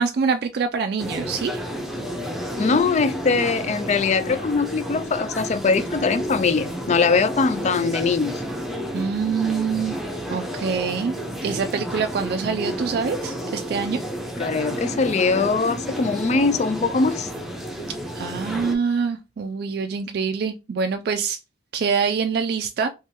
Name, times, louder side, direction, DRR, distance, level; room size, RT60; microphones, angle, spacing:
voice 1, 0.0-1.6 8.9-10.0 10.3-11.2 11.4-14.0 18.1-21.4 21.7-22.9, right 5 dB, 55° right, 0.3 m, -25 dB
sound 1, 1.0-18.8, equal, ahead, 0.7 m, -31 dB
voice 2, 2.6-8.4 14.4-17.3, left 4 dB, 35° left, 0.3 m, -21 dB
3.5 x 3.1 x 2.9 m
head